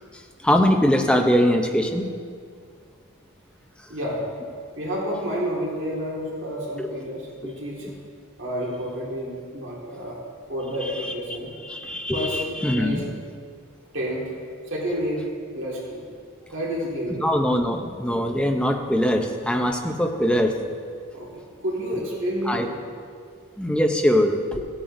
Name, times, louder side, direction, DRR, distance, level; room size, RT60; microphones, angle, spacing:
voice 1, 0.4-2.1 6.8-6.9 7.8-7.9 10.9-11.1 11.7-13.0 17.2-20.6 22.5-22.7 23.6-24.6, equal, 5° left, 3 dB, 0.5 m, -22 dB
voice 2, 3.9-4.2 4.7-7.9 8.4-10.2 10.5-11.5 12.1-12.4 12.7-13.0 13.9-14.2 14.6-15.2 15.5-16.0 16.5-17.2 21.1-21.3 21.6-22.6, equal, 60° right, -4 dB, 1.8 m, -29 dB
15.5 x 8.8 x 2.6 m, 2.1 s
head